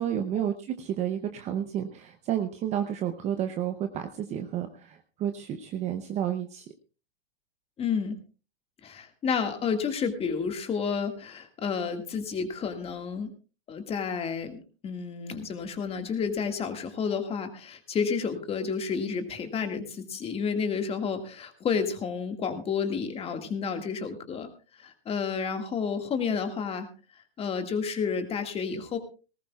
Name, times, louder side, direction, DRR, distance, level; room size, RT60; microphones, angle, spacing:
voice 1, 0.0-6.7, right 10 dB, 20° right, 7 dB, 0.7 m, -31 dB
voice 2, 7.8-8.2 8.8-13.3 13.7-24.5 24.8-26.9 27.4-29.0, left 6 dB, 15° left, 6 dB, 1.9 m, -30 dB
19.0 x 18.5 x 2.3 m, 0.34 s
supercardioid pair, 155°, 34 cm